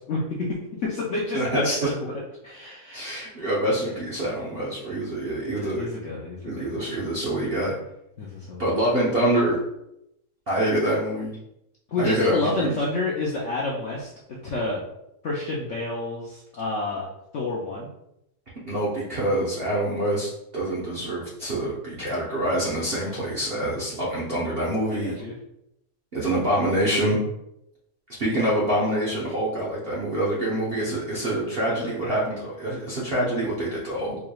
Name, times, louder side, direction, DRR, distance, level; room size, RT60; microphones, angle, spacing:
voice 1, 0.1-1.7 2.4-3.1 3.4-3.5 5.4-6.7 8.2-8.7 11.9-14.1 14.4-14.8 15.2-17.9 25.0-25.3 26.2-26.3 31.7-32.2, left 3 dB, 60° left, -5 dB, 0.8 m, -29 dB
voice 2, 1.3-1.9 2.9-5.9 6.4-7.7 8.6-9.6 10.5-11.3 12.0-12.7 18.6-25.1 26.1-27.2 28.2-34.2, right 1 dB, 50° right, -7 dB, 0.7 m, -26 dB
4.8 x 3.1 x 2.3 m, 0.81 s
omnidirectional pair, 1.9 m